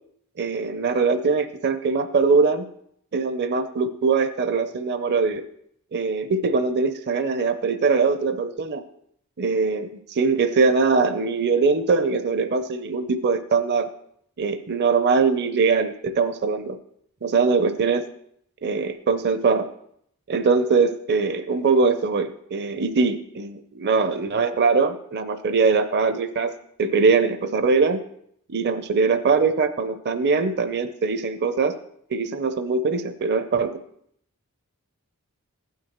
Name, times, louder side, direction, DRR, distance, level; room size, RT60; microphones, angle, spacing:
voice 1, 0.4-2.7 3.1-5.4 5.9-8.8 9.4-13.9 14.4-16.8 17.2-18.1 18.6-19.7 20.3-26.5 26.8-28.0 28.5-31.8 32.1-33.8, right 4 dB, 50° right, 9 dB, 0.6 m, -22 dB
15.5 x 9.4 x 3.0 m, 0.70 s
head